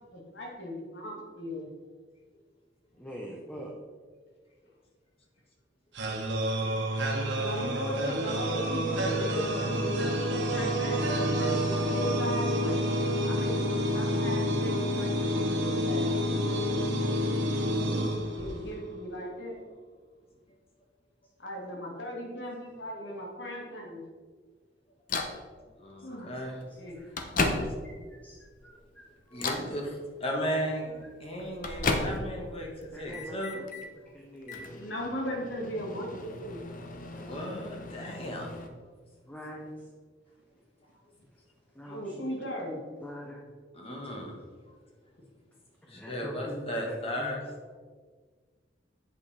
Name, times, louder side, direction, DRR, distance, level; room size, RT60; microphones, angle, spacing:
voice 1, 0.0-1.7 6.5-6.8 7.4-10.1 10.3-16.1 18.3-19.6 21.4-24.1 26.0-26.3 26.8-27.0 34.7-36.6 41.9-42.8, equal, 80° left, -2 dB, 2.1 m, -38 dB
voice 2, 3.0-3.7 27.5-28.0 28.2-28.3 28.6-28.7 29.3-29.5 32.9-33.6 34.1-34.9 39.3-39.7 41.8-42.5 43.0-43.5 45.9-47.4, equal, 10° left, -2 dB, 0.7 m, -44 dB
sound 1, 6.0-18.9, equal, 70° right, 1.2 m, -28 dB
Microwave oven, 25.1-25.4 26.4-26.5 26.9-28.0 28.5-28.9 29.3-29.7 31.0-32.5 32.8-33.9 34.4-38.7, left 3 dB, 50° left, 0.8 m, -34 dB
voice 3, 25.8-26.6 29.3-33.6 37.1-38.5 43.7-44.3 45.9-47.4, equal, 35° left, 0 dB, 1.4 m, -35 dB
8.2 x 5.3 x 4.2 m, 1.5 s
head